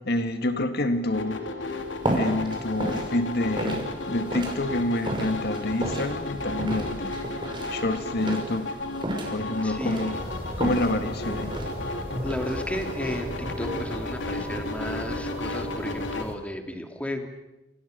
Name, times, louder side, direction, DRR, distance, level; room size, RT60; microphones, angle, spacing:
voice 1, 0.0-1.8 2.1-7.2 7.7-8.8 9.3-10.2 10.6-11.6, left 1 dB, 60° left, 8 dB, 1.8 m, -28 dB
sound 1, 1.1-16.3, left 2 dB, 90° left, 3.3 m, -34 dB
sound 2, 1.6-15.7, right 1 dB, 25° right, 6.0 m, -34 dB
voice 2, 9.6-10.2 12.2-17.3, equal, 5° left, 4 dB, 3.1 m, -34 dB
sound 3, 10.1-16.4, equal, 35° left, 3.8 m, -37 dB
29.0 x 28.5 x 6.8 m, 1.0 s
head